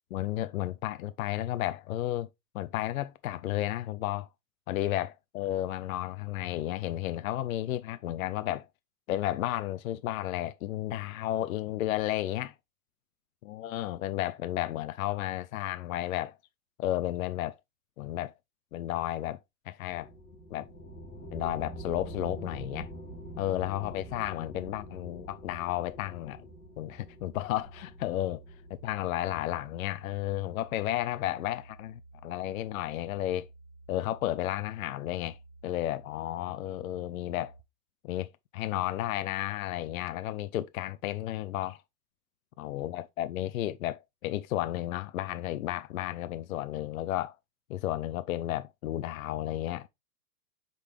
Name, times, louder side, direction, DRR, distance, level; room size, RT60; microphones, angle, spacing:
voice 1, 0.1-2.3 2.5-4.3 4.7-8.7 9.1-12.5 13.4-16.3 16.8-17.6 18.0-18.3 18.7-19.4 19.7-20.1 20.5-20.7 21.3-22.9 23.4-26.5 26.8-28.4 28.8-33.5 33.9-35.4 35.6-37.5 38.0-41.8 42.6-47.4 47.7-49.9, left 14 dB, 60° left, 0.6 m, -33 dB
sound 1, 19.9-29.9, right 1 dB, 5° left, 0.4 m, -45 dB
sound 2, 27.6-37.6, right 2 dB, 20° left, 0.8 m, -53 dB
8.2 x 4.0 x 3.2 m
hypercardioid pair, 150°, 49 cm